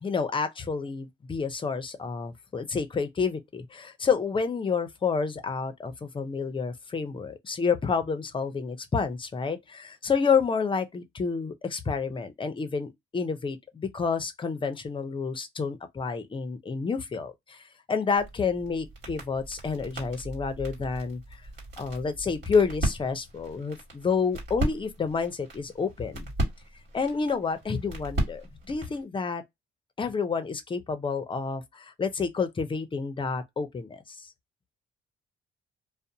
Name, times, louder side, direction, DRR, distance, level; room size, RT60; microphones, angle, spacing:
voice 1, 0.0-21.2 21.8-26.3 26.9-29.4 30.0-34.3, left 5 dB, 25° left, 0.5 m, -29 dB
sound 1, 18.2-29.0, right 1 dB, 60° right, 1.4 m, -36 dB
2.4 x 2.0 x 2.7 m
cardioid pair, 90°, 20 cm